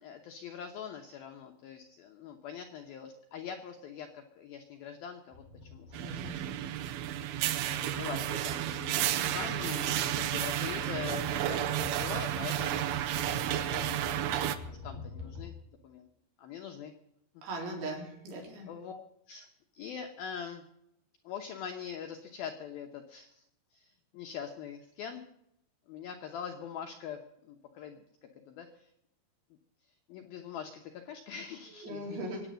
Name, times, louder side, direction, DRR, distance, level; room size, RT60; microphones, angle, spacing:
voice 1, 0.0-6.6 7.7-13.5 13.7-14.2 14.7-15.5 15.8-16.1 16.4-16.9 18.7-19.5 19.7-20.6 21.2-23.4 23.7-25.2 25.9-28.9 30.1-32.3, left 7 dB, 80° left, 4 dB, 2.2 m, -43 dB
sound 1, 5.3-15.5, left 4 dB, 50° right, 3.7 m, -46 dB
sound 2, 5.9-14.6, right 12 dB, 90° right, 2.2 m, -32 dB
voice 2, 6.0-6.4 17.4-18.7 31.8-32.4, right 1 dB, 70° right, 0 dB, 6.1 m, -39 dB
23.0 x 9.2 x 6.3 m, 0.79 s
omnidirectional pair, 5.6 m